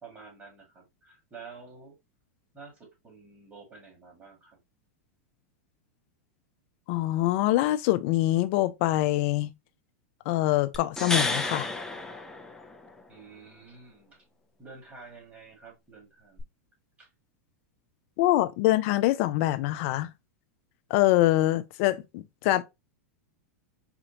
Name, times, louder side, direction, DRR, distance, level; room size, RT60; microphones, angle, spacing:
voice 1, 0.0-2.0 2.5-4.6 13.1-14.2 14.6-16.5 17.0-17.1, right 4 dB, 20° right, 2.3 m, -49 dB
voice 2, 6.9-9.5 10.3-11.7 18.2-20.1 20.9-22.6, left 16 dB, 55° left, 0.5 m, -24 dB
sound 1, 10.7-13.0 16.4-16.5, left 2 dB, 5° left, 0.6 m, -31 dB
4.3 x 2.4 x 2.9 m
hypercardioid pair, 110°, 8 cm